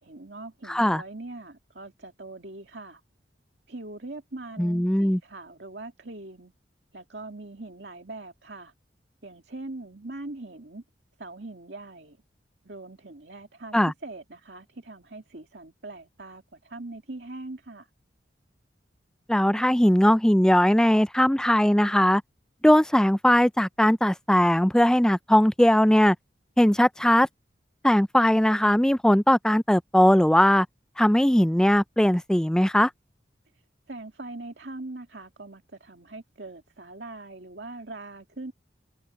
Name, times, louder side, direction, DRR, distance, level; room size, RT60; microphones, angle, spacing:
voice 1, 0.0-3.0 3.7-6.5 6.9-8.7 9.2-10.8 11.2-12.2 12.6-13.8 14.0-17.9 33.5-33.6 33.9-38.5, right 2 dB, 70° right, 2.3 m, -41 dB
voice 2, 0.7-1.0 4.6-5.2 13.7-13.9 19.3-22.2 22.6-26.2 26.6-27.3 27.8-30.7 31.0-32.9, equal, 5° left, 0.4 m, -20 dB
head